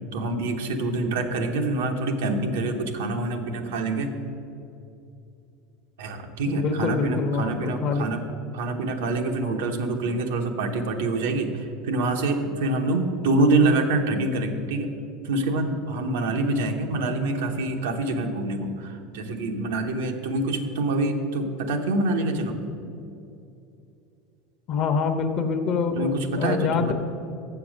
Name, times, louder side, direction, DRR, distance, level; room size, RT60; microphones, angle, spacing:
voice 1, 0.1-4.2 6.0-8.2 8.5-14.9 15.2-22.7 25.9-26.9, right 2 dB, 90° right, 4 dB, 1.0 m, -26 dB
voice 2, 6.5-8.1 24.7-26.9, left 5 dB, 45° left, 6 dB, 0.9 m, -25 dB
7.0 x 6.9 x 6.3 m, 2.7 s
supercardioid pair, 125°, 0 cm